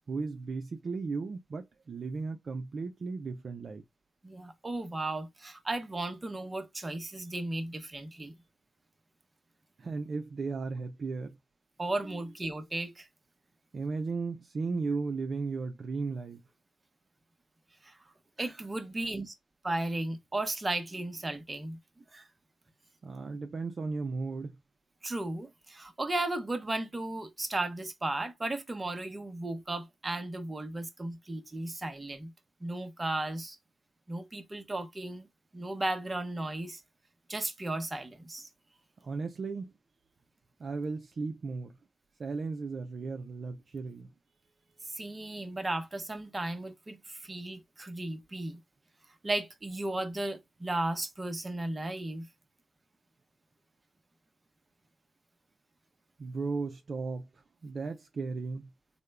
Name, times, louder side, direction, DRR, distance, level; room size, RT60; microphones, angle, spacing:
voice 1, 0.1-3.8 9.8-11.4 12.0-12.2 13.7-16.4 23.0-24.6 39.0-39.7 40.6-41.8 42.2-44.1 56.2-58.7, right 4 dB, 50° right, 0.5 m, -35 dB
voice 2, 4.2-8.3 11.8-13.1 17.8-18.0 18.4-19.3 19.6-21.8 22.1-22.3 25.0-32.3 32.6-33.6 34.1-35.3 35.5-36.8 37.3-38.5 44.9-48.6 49.2-52.3, right 2 dB, 25° right, 0.9 m, -35 dB
3.5 x 2.2 x 3.3 m
supercardioid pair, 60°, 0 cm